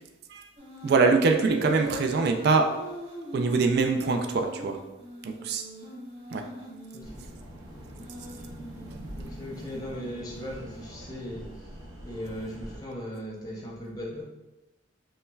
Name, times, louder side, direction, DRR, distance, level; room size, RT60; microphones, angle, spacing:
sound 1, 0.6-1.1 1.4-7.1 7.8-10.7, equal, 30° right, 0.8 m, -42 dB
voice 1, 0.8-2.7 3.3-4.8 5.2-5.6 6.3-6.4, right 4 dB, 50° right, 4 dB, 0.3 m, -23 dB
sound 2, 7.0-12.8, equal, 75° right, 0.7 m, -43 dB
voice 2, 9.2-11.4 12.0-14.2, equal, 20° left, -3 dB, 0.6 m, -38 dB
5.3 x 2.1 x 2.2 m, 1.0 s
head